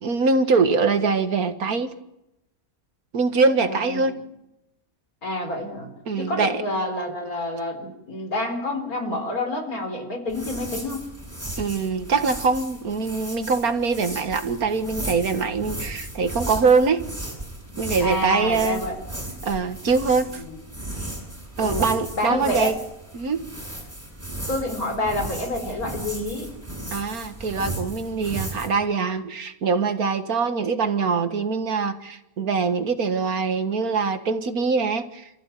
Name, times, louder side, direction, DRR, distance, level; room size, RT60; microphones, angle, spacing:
voice 1, 0.0-1.9 3.1-4.2 6.1-6.6 11.6-17.0 17.8-18.8 19.4-20.4 21.6-22.7 23.1-23.4 26.9-35.3, right 4 dB, 90° right, 9 dB, 2.1 m, -23 dB
voice 2, 3.6-4.0 5.2-11.0 18.0-19.0 20.4-20.6 21.6-21.8 22.2-22.7 24.5-26.5, left 1 dB, 90° left, 5 dB, 4.7 m, -28 dB
sound 1, 10.3-28.7, right 1 dB, 10° right, 7.3 m, -35 dB
28.5 x 14.5 x 9.2 m, 0.89 s
omnidirectional pair, 1.5 m